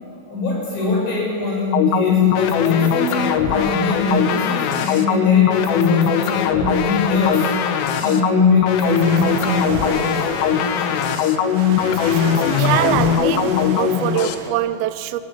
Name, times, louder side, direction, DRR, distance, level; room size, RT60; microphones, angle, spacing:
voice 1, 0.2-11.5, left 1 dB, 65° left, -2 dB, 10.0 m, -24 dB
sound 1, 1.7-14.4, left 9 dB, 85° left, 4.0 m, -19 dB
sound 2, 8.8-14.5, right 4 dB, 50° right, 2.8 m, -30 dB
voice 2, 12.6-15.2, right 13 dB, 85° right, 11 dB, 2.2 m, -23 dB
24.5 x 23.5 x 9.9 m, 2.6 s
omnidirectional pair, 5.7 m